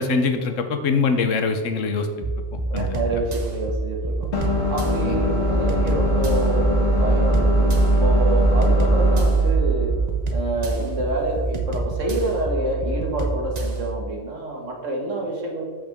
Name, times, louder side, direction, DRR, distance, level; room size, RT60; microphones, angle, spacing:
voice 1, 0.0-2.3 2.7-3.0 5.0-5.2, left 4 dB, 75° left, 7 dB, 1.2 m, -23 dB
sound 1, 2.2-13.9, right 2 dB, 35° right, 0.8 m, -28 dB
voice 2, 2.7-4.3 4.7-9.9 10.3-15.6, right 2 dB, 75° right, 0 dB, 1.9 m, -27 dB
sound 2, 4.3-11.4, right 1 dB, 60° left, 1.7 m, -20 dB
13.5 x 5.4 x 3.5 m, 1.5 s
omnidirectional pair, 1.3 m